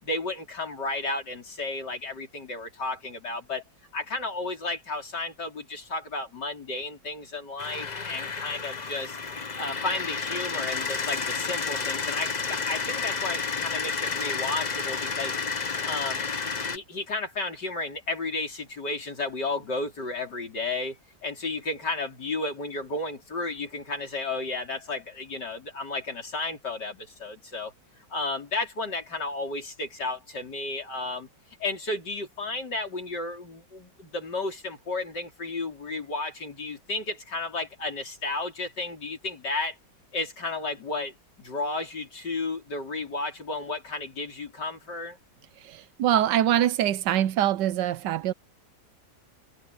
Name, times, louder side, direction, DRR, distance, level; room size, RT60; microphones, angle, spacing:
voice 1, 0.0-3.6 3.9-9.2 9.6-15.4 15.8-27.7 28.1-31.3 31.6-39.8 40.1-45.2, left 3 dB, 70° left, 5.0 m, -33 dB
sound 1, 7.6-16.8, left 5 dB, 30° left, 0.9 m, -31 dB
voice 2, 45.6-48.3, right 11 dB, 80° right, 1.3 m, -24 dB
omnidirectional pair, 1.9 m